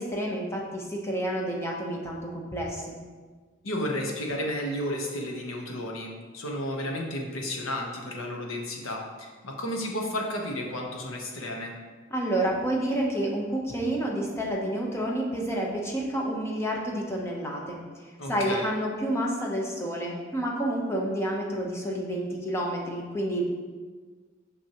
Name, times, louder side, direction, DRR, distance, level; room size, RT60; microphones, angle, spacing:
voice 1, 0.0-3.0 12.1-17.8 18.3-23.4, right 1 dB, 15° left, -2 dB, 0.8 m, -29 dB
voice 2, 3.6-11.7 18.2-18.7, left 1 dB, 75° left, 1 dB, 0.9 m, -32 dB
6.0 x 5.8 x 2.9 m, 1.5 s
head